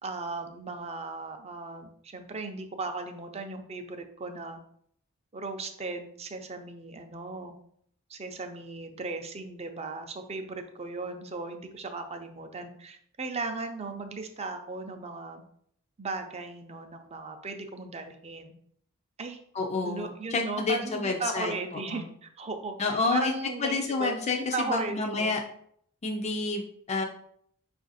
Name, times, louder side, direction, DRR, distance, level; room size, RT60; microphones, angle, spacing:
voice 1, 0.0-4.6 5.3-7.6 8.1-15.4 16.0-18.5 19.2-19.4 19.8-24.1 24.5-25.4, right 3 dB, 30° right, 6 dB, 0.5 m, -37 dB
voice 2, 19.5-21.5 21.9-22.1 22.8-23.3 23.6-25.4 26.0-26.6 26.9-27.0, left 3 dB, 30° left, 2 dB, 0.4 m, -29 dB
5.3 x 2.5 x 4.0 m, 0.66 s
head